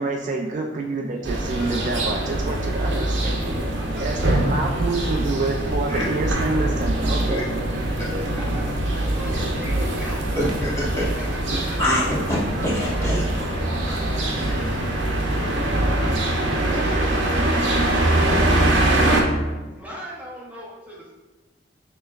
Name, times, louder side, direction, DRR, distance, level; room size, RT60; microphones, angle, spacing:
voice 1, 0.0-3.4 4.0-7.4, right 3 dB, 40° right, 1 dB, 0.3 m, -27 dB
sound 1, 0.5-19.6, left 2 dB, 45° left, 0.6 m, -41 dB
sound 2, 1.2-19.2, right 1 dB, 75° right, 0.7 m, -23 dB
voice 2, 7.7-10.4 10.7-11.8 19.8-21.1, equal, 10° right, -5 dB, 0.7 m, -41 dB
voice 3, 10.3-11.0 11.8-12.1 12.6-14.0 14.3-14.8, left 1 dB, 15° left, -8 dB, 1.1 m, -27 dB
6.4 x 3.0 x 2.4 m, 1.2 s
head